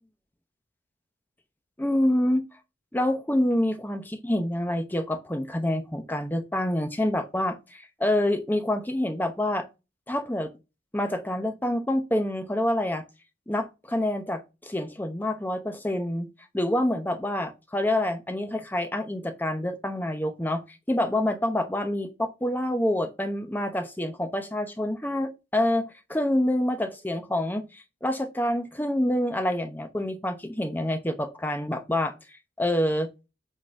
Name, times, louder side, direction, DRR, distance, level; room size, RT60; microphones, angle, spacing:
voice 1, 1.8-2.4 2.9-9.7 10.1-10.5 10.9-13.0 13.5-16.3 16.5-32.1 32.6-33.1, left 1 dB, 10° left, 0.8 m, -27 dB
7.7 x 3.9 x 4.7 m
head